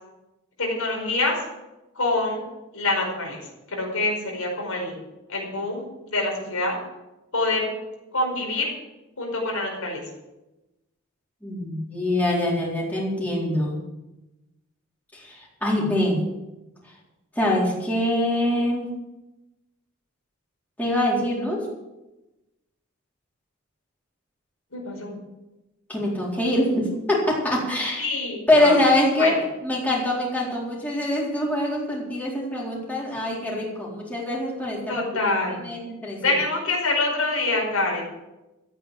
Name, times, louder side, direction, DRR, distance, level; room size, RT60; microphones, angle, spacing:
voice 1, 0.6-1.4 1.9-2.4 2.7-3.4 3.7-5.0 5.3-6.8 7.3-7.7 8.1-8.7 9.2-10.0 24.7-25.2 28.0-28.8 29.2-29.3 34.9-35.6 36.2-38.0, left 2 dB, 85° left, -1 dB, 5.1 m, -25 dB
voice 2, 11.4-13.8 15.1-16.2 17.4-18.9 20.8-21.7 25.9-28.0 28.5-35.0 35.6-36.3, left 1 dB, 10° left, -5 dB, 4.1 m, -24 dB
13.5 x 9.1 x 7.6 m, 1.0 s
head